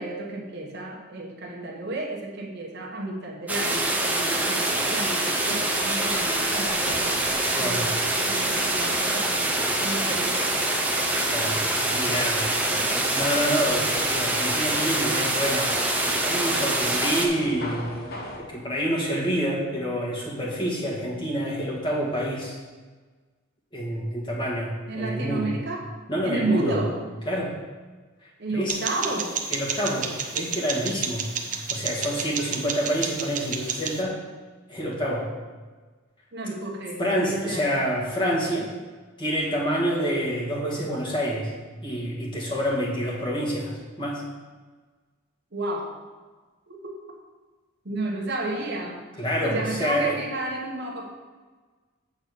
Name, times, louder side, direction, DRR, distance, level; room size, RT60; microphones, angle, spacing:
voice 1, 0.0-7.9 8.3-9.5 9.8-10.6 24.8-25.9 26.2-26.9 28.4-29.4 36.3-37.6 45.5-45.9 46.7-46.9 47.8-49.1 49.4-51.1, right 2 dB, 55° right, -1 dB, 1.2 m, -32 dB
sound 1, 3.5-17.3, right 1 dB, 5° right, 0.7 m, -25 dB
sound 2, 6.7-18.4, left 1 dB, 45° left, 1.1 m, -40 dB
voice 2, 7.5-7.9 11.2-12.5 12.8-12.9 13.1-15.7 16.1-17.9 18.5-22.6 23.7-25.6 26.1-26.8 27.2-27.5 28.5-28.8 29.5-31.3 31.7-34.2 34.7-35.3 37.0-38.7 39.2-41.5 41.8-44.2 49.2-50.2, equal, 25° left, -4 dB, 1.7 m, -27 dB
sound 3, 28.7-34.0, right 6 dB, 40° right, 0.7 m, -31 dB
7.8 x 4.1 x 6.7 m, 1.4 s
head